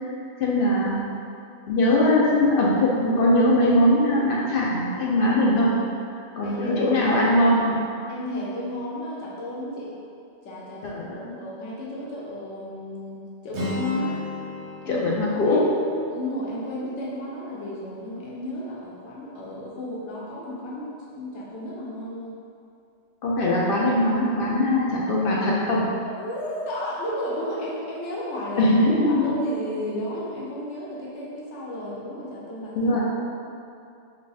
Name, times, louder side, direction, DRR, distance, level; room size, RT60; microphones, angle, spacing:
voice 1, 0.4-1.0 1.7-5.7 6.4-7.8 10.8-11.3 14.9-15.7 23.2-25.8 28.6-29.3 32.8-33.0, left 1 dB, 60° left, -5 dB, 0.7 m, -21 dB
voice 2, 6.4-7.1 8.1-10.0 10.4-14.2 14.8-15.0 15.4-22.4 26.0-28.7 29.1-32.9, left 1 dB, 90° left, -5 dB, 1.0 m, -33 dB
Acoustic guitar, 13.5-17.5, left 2 dB, 85° right, 1.2 m, -35 dB
3.2 x 2.5 x 3.9 m, 2.6 s
omnidirectional pair, 1.1 m